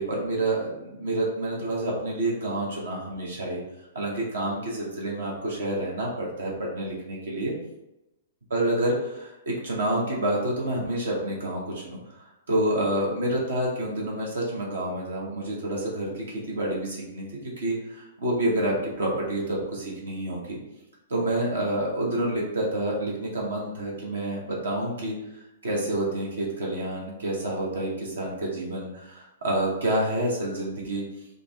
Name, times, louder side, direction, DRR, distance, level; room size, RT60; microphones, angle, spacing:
voice 1, 0.0-3.6 3.9-7.5 8.5-20.6 21.1-31.0, right 1 dB, 75° right, -3 dB, 0.9 m, -28 dB
3.8 x 2.1 x 3.4 m, 0.92 s
figure-of-eight pair, 110°, 0 cm